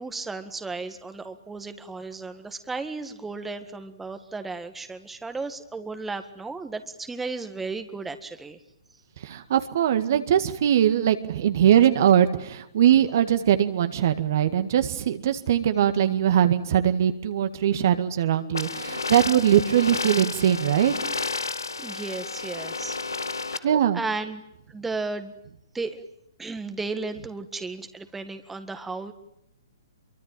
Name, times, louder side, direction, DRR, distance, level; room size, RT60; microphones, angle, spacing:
voice 1, 0.0-8.6 21.8-23.0 23.5-24.4 24.7-25.3 25.7-26.0 26.4-29.1, right 3 dB, 5° right, 8 dB, 1.8 m, -34 dB
voice 2, 9.2-20.9 23.6-24.0, right 10 dB, 50° right, 9 dB, 1.9 m, -21 dB
sound 1, 18.5-23.6, left 4 dB, 75° left, 1.3 m, -31 dB
27.0 x 23.5 x 9.1 m, 0.78 s
figure-of-eight pair, 120°, 2 cm